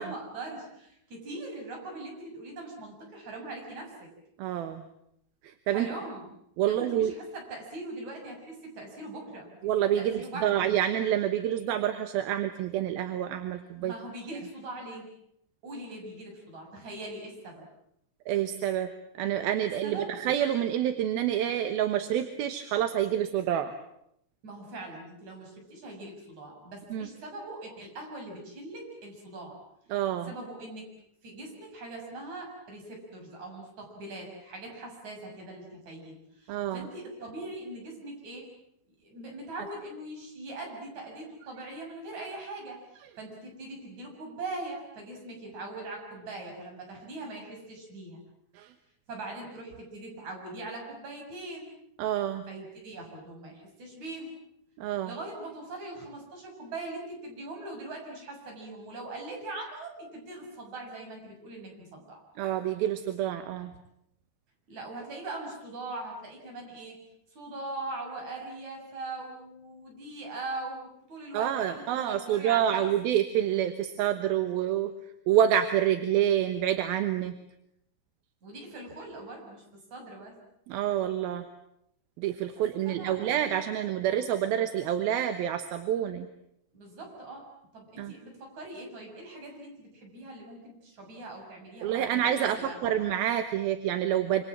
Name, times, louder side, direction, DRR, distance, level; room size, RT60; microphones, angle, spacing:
voice 1, 0.0-4.1 5.7-6.3 6.6-9.6 10.0-10.6 13.8-15.0 15.6-17.6 19.8-20.1 24.4-29.6 30.2-30.9 31.2-38.5 39.0-42.8 43.2-48.2 49.1-51.8 52.5-54.3 55.0-62.2 64.7-67.0 67.3-72.9 78.4-80.3 82.9-83.3 86.7-87.5 87.7-92.9, right 2 dB, 50° right, 1 dB, 8.2 m, -41 dB
voice 2, 4.4-4.8 5.4-5.9 6.6-7.1 9.6-13.9 18.3-18.9 19.2-23.7 26.9-27.1 29.9-30.3 36.5-36.9 48.5-48.7 52.0-52.4 54.8-55.1 62.4-63.7 71.3-74.9 75.3-77.3 80.7-81.5 82.2-86.3 88.0-88.1 91.8-94.4, right 10 dB, 80° right, 8 dB, 3.0 m, -27 dB
27.5 x 26.0 x 7.5 m, 0.75 s
omnidirectional pair, 4.4 m